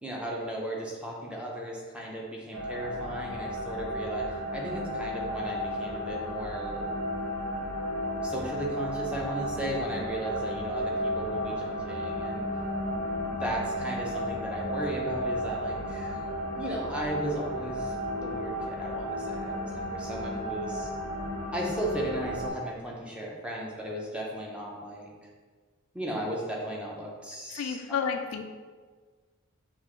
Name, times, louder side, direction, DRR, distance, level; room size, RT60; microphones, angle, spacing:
voice 1, 0.0-6.9 8.2-12.4 13.1-16.2 16.5-20.9 21.5-25.1 25.9-27.8, right 1 dB, 5° right, -3 dB, 0.6 m, -36 dB
sound 1, 2.5-22.5, equal, 85° right, 1.0 m, -33 dB
voice 2, 27.5-28.4, left 6 dB, 65° left, 6 dB, 0.3 m, -31 dB
6.2 x 2.5 x 3.0 m, 1.5 s
head